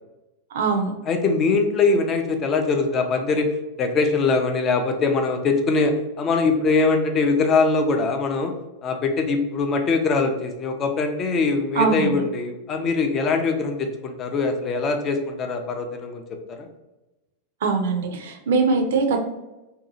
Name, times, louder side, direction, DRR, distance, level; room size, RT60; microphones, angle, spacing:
voice 1, 0.5-0.9 11.8-12.2 17.6-19.2, right 4 dB, 60° right, 4 dB, 0.5 m, -21 dB
voice 2, 1.1-3.5 3.8-8.5 8.8-16.2 16.6-16.7, left 4 dB, 30° left, 5 dB, 0.4 m, -22 dB
2.7 x 2.3 x 2.6 m, 1.0 s
figure-of-eight pair, 90°, 0 cm